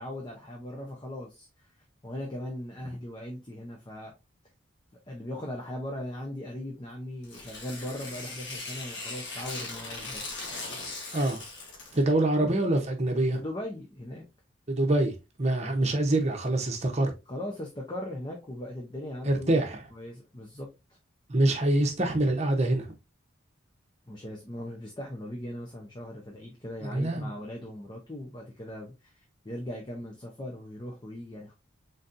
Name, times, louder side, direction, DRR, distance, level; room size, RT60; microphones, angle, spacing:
voice 1, 0.0-1.5 2.0-4.1 5.1-10.2 13.3-14.2 17.3-20.7 24.1-29.1 29.4-31.5, left 1 dB, 20° left, 0.7 m, -39 dB
Tearing, 7.2-12.1, left 3 dB, 60° left, 1.4 m, -39 dB
voice 2, 11.9-13.4 14.7-17.1 19.3-19.8 21.3-22.9 26.8-27.3, right 1 dB, 35° right, 0.8 m, -25 dB
4.0 x 3.9 x 2.6 m
head